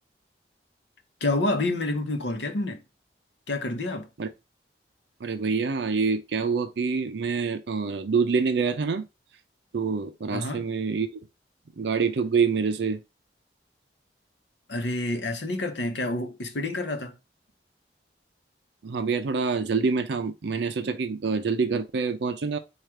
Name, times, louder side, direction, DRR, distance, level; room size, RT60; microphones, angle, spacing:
voice 1, 1.2-2.8 3.5-4.1 10.3-10.7 14.7-17.1, left 2 dB, 85° left, 0.8 m, -28 dB
voice 2, 5.2-9.0 9.7-11.1 11.8-13.0 18.8-22.6, right 5 dB, 75° right, 0.5 m, -26 dB
4.9 x 2.4 x 4.3 m
head